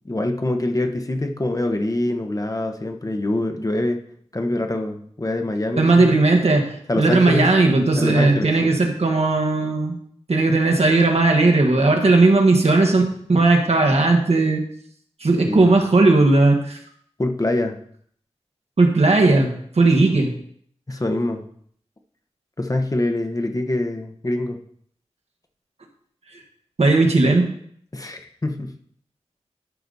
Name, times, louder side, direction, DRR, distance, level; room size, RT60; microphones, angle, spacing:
voice 1, 0.0-4.0 4.3-6.2 6.9-7.5 8.0-8.7 10.5-10.6 15.5-15.7 17.2-17.8 20.0-20.2 20.9-21.4 22.6-24.6 27.9-28.7, left 1 dB, 30° left, 5 dB, 1.0 m, -24 dB
voice 2, 5.8-10.0 10.3-13.0 13.3-14.6 15.2-16.8 18.8-20.3 26.8-27.5, right 3 dB, 65° right, 2 dB, 1.6 m, -17 dB
11.5 x 5.1 x 4.1 m, 0.63 s
wide cardioid pair, 55°, 12 cm